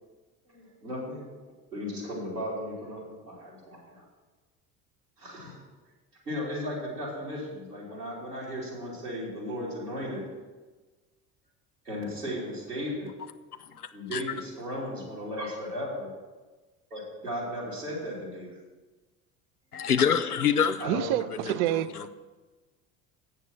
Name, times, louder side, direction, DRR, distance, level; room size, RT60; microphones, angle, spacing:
voice 1, 0.5-1.2 1.7-4.0 5.2-5.6 6.2-10.2 11.8-13.1 13.9-16.1 16.9-18.5 20.8-21.1, equal, 85° right, -8 dB, 3.0 m, -35 dB
voice 2, 13.8-14.2 19.7-20.8 21.4-22.1, left 7 dB, 90° left, 11 dB, 0.5 m, -26 dB
voice 3, 20.8-22.1, right 13 dB, 50° right, 16 dB, 0.5 m, -28 dB
8.3 x 6.7 x 6.1 m, 1.3 s
figure-of-eight pair, 65°, 44 cm